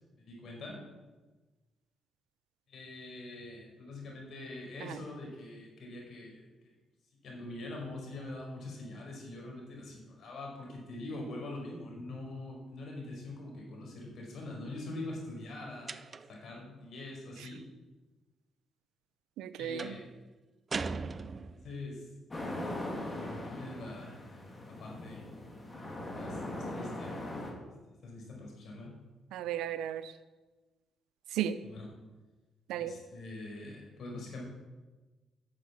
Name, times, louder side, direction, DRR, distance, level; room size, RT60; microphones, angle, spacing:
voice 1, 0.1-0.8 2.7-6.7 7.2-16.0 16.3-17.6 19.6-20.1 21.5-22.0 23.0-24.2 24.6-25.2 25.8-27.1 28.0-28.9 31.6-31.9 32.8-34.4, left 2 dB, 65° left, -1 dB, 4.9 m, -44 dB
sound 1, 15.9-16.5 19.8-20.1 20.7-21.8, right 4 dB, 35° right, 0.5 m, -38 dB
voice 2, 19.4-20.0 29.3-30.1 31.3-31.6 32.7-33.0, right 10 dB, 90° right, 13 dB, 0.7 m, -35 dB
sound 2, 22.3-27.5, left 1 dB, 25° left, 2.8 m, -40 dB
11.0 x 6.8 x 8.5 m, 1.2 s
cardioid pair, 90°, 0 cm